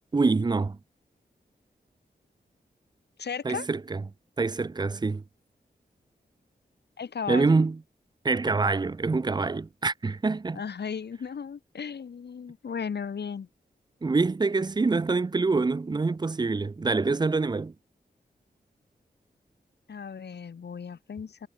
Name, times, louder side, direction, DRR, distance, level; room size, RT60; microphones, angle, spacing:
voice 1, 0.1-0.8 3.4-4.0 4.4-5.2 7.3-7.8 8.2-10.6 14.0-17.7, right 3 dB, 25° right, 0.5 m, -25 dB
voice 2, 3.2-3.7 7.0-7.6 10.5-13.5 19.9-21.5, left 6 dB, 85° left, 3.5 m, -35 dB
wide cardioid pair, 115°, 17 cm